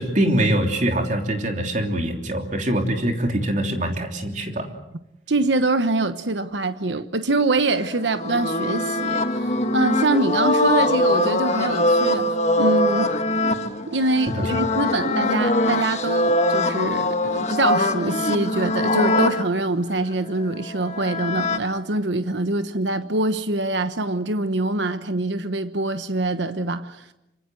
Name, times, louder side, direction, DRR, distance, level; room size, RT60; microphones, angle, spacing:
voice 1, 0.0-4.7 14.3-14.4, right 1 dB, 40° right, 3.2 m, -23 dB
voice 2, 5.3-13.1 13.9-27.0, right 2 dB, 80° right, 1.1 m, -24 dB
sound 1, 7.7-19.4 20.5-21.6, left 1 dB, 40° left, 1.6 m, -22 dB
25.5 x 25.0 x 7.8 m
head